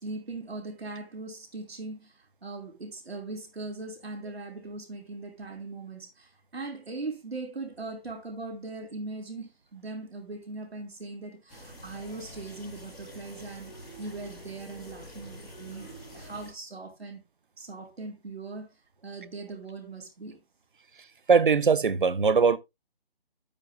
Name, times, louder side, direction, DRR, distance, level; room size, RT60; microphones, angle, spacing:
voice 1, 0.0-13.7 14.0-17.2 17.6-18.7 19.0-20.4, right 3 dB, 80° right, 3.7 m, -40 dB
sound 1, 11.5-16.5, equal, ahead, 1.3 m, -46 dB
voice 2, 21.3-22.6, right 5 dB, 55° right, 0.7 m, -21 dB
10.5 x 8.8 x 2.2 m
hypercardioid pair, 180°, 31 cm